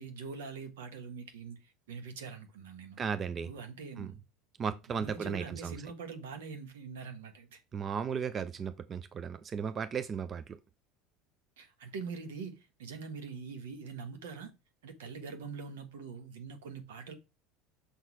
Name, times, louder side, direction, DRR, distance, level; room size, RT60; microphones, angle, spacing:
voice 1, 0.0-3.0 3.4-4.2 4.9-7.6 11.6-14.5 14.8-17.1, right 5 dB, 80° right, 1.4 m, -43 dB
voice 2, 3.0-3.5 4.0-4.1 4.6-5.7 7.7-10.6, right 6 dB, 35° right, 0.5 m, -35 dB
6.5 x 4.1 x 4.7 m
hypercardioid pair, 80°, 0 cm